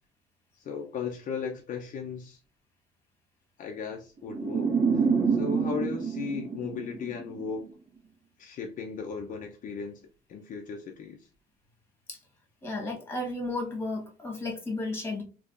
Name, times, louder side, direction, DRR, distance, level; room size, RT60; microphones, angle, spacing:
voice 1, 0.6-2.4 3.6-7.7 8.4-10.0 10.3-11.3, left 6 dB, 50° left, 0.5 m, -36 dB
sound 1, 4.3-7.5, right 5 dB, 55° right, 1.5 m, -27 dB
voice 2, 12.6-15.2, left 2 dB, 15° left, 1.3 m, -33 dB
3.5 x 2.9 x 2.4 m
cardioid pair, 110°, 17 cm